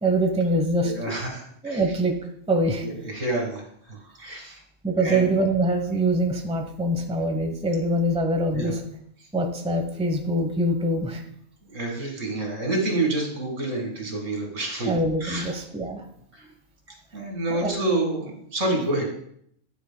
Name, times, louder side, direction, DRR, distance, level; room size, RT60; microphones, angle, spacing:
voice 1, 0.0-0.9 1.6-2.2 2.5-2.8 4.8-8.8 9.3-11.2 14.9-16.0 17.5-17.8, right 1 dB, 5° right, 4 dB, 0.8 m, -24 dB
voice 2, 0.8-1.8 2.8-4.6 5.0-5.3 8.5-8.7 11.7-14.9 15.2-15.5 16.3-16.4 17.1-19.1, right 2 dB, 90° right, 1 dB, 2.3 m, -28 dB
9.3 x 9.1 x 2.2 m, 0.69 s
omnidirectional pair, 1.3 m